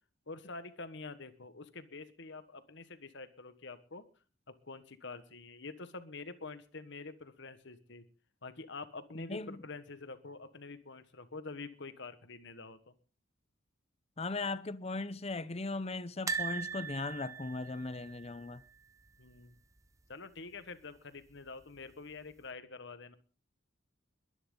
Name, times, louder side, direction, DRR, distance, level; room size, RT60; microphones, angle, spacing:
voice 1, 0.3-4.0 4.6-8.0 8.4-12.9 19.2-19.5 20.1-23.2, left 3 dB, 60° left, 1.5 m, -47 dB
voice 2, 9.1-9.6 14.2-18.6, left 3 dB, 30° left, 0.7 m, -38 dB
sound 1, 16.3-19.3 19.6-19.8 20.0-20.1 21.4-21.9 22.4-22.5, right 5 dB, 15° right, 0.8 m, -40 dB
22.0 x 11.0 x 3.9 m
head